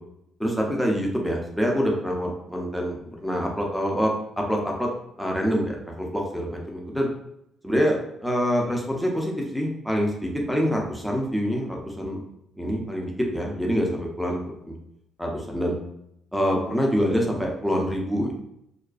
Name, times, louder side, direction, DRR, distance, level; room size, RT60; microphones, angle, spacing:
voice 1, 0.4-4.9 5.2-7.1 7.6-8.0 8.2-12.2 12.6-14.8 15.2-15.8 16.3-18.3, equal, ahead, -1 dB, 0.5 m, -26 dB
2.4 x 2.2 x 2.3 m, 0.78 s
cardioid pair, 90°, 0 cm